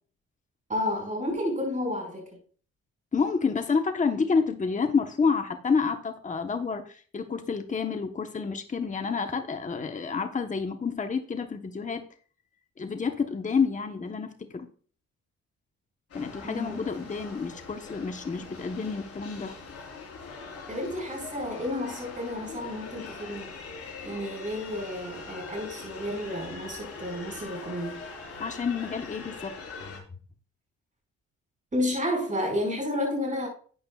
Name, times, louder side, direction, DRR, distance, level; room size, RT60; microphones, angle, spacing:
voice 1, 0.7-2.3 16.4-16.8 20.7-23.5 24.0-28.0 31.7-33.5, left 1 dB, 25° right, 5.4 m, -31 dB
voice 2, 3.1-12.0 12.8-14.7 16.1-19.5 28.4-29.5 29.8-30.0, left 5 dB, 25° left, 1.1 m, -29 dB
sound 1, 16.1-30.0, left 4 dB, 50° left, 4.4 m, -42 dB
12.0 x 8.7 x 2.4 m
cardioid pair, 90°, 29 cm